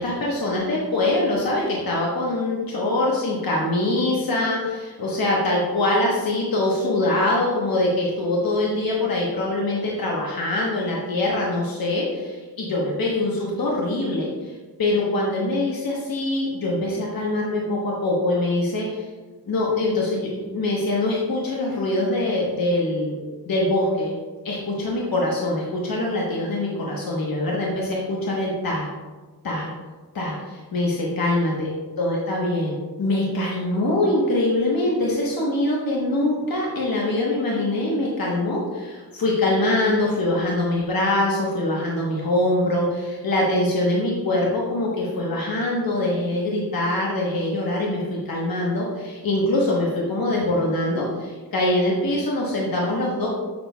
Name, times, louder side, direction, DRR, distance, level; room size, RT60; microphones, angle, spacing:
voice 1, 0.0-14.5 14.8-19.1 19.5-23.2 23.5-24.1 24.4-28.9 29.4-29.7 30.1-31.7 32.0-53.3, left 1 dB, 60° left, -4 dB, 1.1 m, -23 dB
6.9 x 6.0 x 2.2 m, 1.3 s
wide cardioid pair, 120°, 39 cm